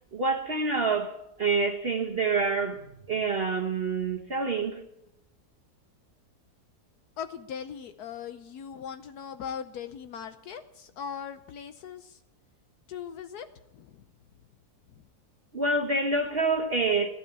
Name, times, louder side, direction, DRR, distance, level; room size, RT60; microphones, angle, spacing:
voice 1, 0.1-2.8 3.1-4.8 15.5-17.1, right 3 dB, 40° right, 1.3 m, -27 dB
voice 2, 7.2-12.2 12.9-13.5 13.7-14.0, left 7 dB, 75° left, 1.3 m, -39 dB
15.0 x 12.5 x 7.0 m
omnidirectional pair, 1.7 m